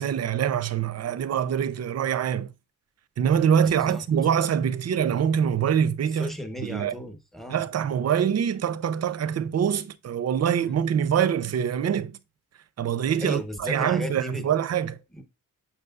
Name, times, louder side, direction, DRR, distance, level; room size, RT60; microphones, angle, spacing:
voice 1, 0.0-2.5 3.2-6.3 6.6-6.9 7.5-12.1 12.8-15.0, right 8 dB, 45° right, 0.5 m, -24 dB
voice 2, 3.5-4.0 6.1-7.7 13.2-14.5 15.1-15.2, left 1 dB, ahead, 0.9 m, -35 dB
6.7 x 5.9 x 2.4 m
wide cardioid pair, 130°, 35 cm